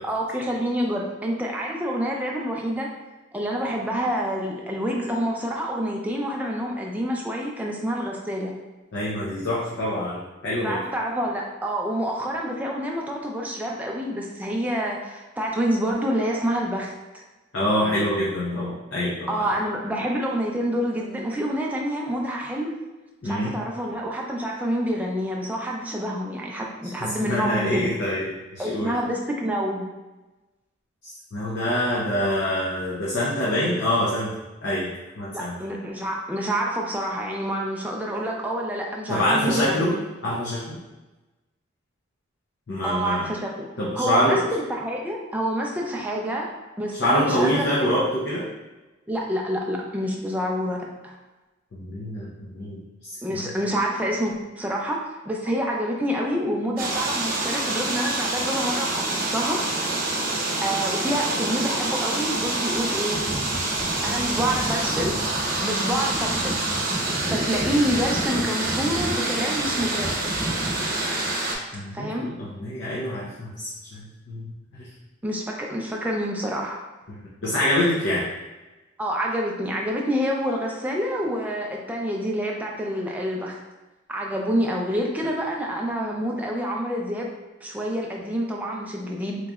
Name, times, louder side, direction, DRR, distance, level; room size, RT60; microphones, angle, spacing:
voice 1, 0.0-2.9 3.3-8.5 10.5-17.2 19.3-22.8 23.2-27.9 28.6-29.9 35.3-40.0 42.8-43.7 44.0-46.5 46.8-47.9 49.1-51.2 53.2-59.6 60.6-63.2 64.0-65.2 65.6-66.5 67.3-70.3 71.9-72.3 75.2-76.8 79.0-83.6 84.1-87.3 87.6-89.5, equal, 10° right, -1 dB, 0.4 m, -27 dB
voice 2, 8.9-10.8 17.5-19.5 23.2-23.5 27.0-28.9 31.3-34.3 34.6-35.6 39.1-39.9 40.2-40.8 42.7-43.3 43.8-44.4 46.9-48.5 51.7-53.4 64.1-64.3 71.7-74.5 74.8-74.9 77.1-78.2, left 1 dB, 60° left, -6 dB, 0.6 m, -25 dB
sound 1, 56.8-71.5, right 2 dB, 45° right, 0.8 m, -26 dB
3.8 x 3.1 x 2.3 m, 1.1 s
head